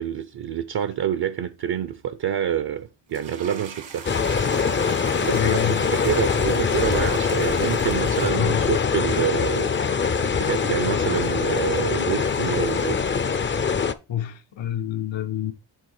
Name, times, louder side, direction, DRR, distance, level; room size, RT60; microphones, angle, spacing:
voice 1, 0.0-4.1 5.2-9.7 10.2-13.1, right 9 dB, 60° right, 0.6 m, -27 dB
sound 1, 3.1-13.3, right 6 dB, 80° right, 1.7 m, -43 dB
sound 2, 4.0-13.9, left 5 dB, 25° left, 0.5 m, -23 dB
voice 2, 5.3-5.9 8.3-8.8 14.1-15.5, left 11 dB, 80° left, 1.0 m, -27 dB
7.8 x 3.6 x 4.7 m
cardioid pair, 95°, 45 cm